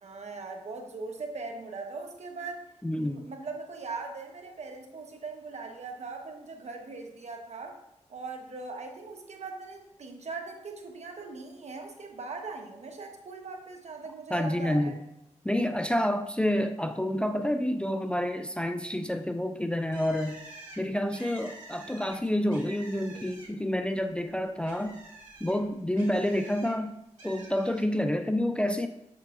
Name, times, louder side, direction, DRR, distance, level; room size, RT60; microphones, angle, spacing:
voice 1, 0.0-2.7 2.9-7.8 8.1-15.0, right 4 dB, 65° right, 3 dB, 1.0 m, -40 dB
voice 2, 2.8-3.3 14.3-15.0 15.4-20.4 20.8-25.0 25.4-27.0 27.2-28.9, left 1 dB, 10° left, 8 dB, 0.4 m, -28 dB
Bird, 19.9-23.8 24.1-26.7 27.2-27.8, right 2 dB, 80° right, 2.2 m, -48 dB
7.3 x 6.7 x 2.5 m, 0.86 s
cardioid pair, 75°, 12 cm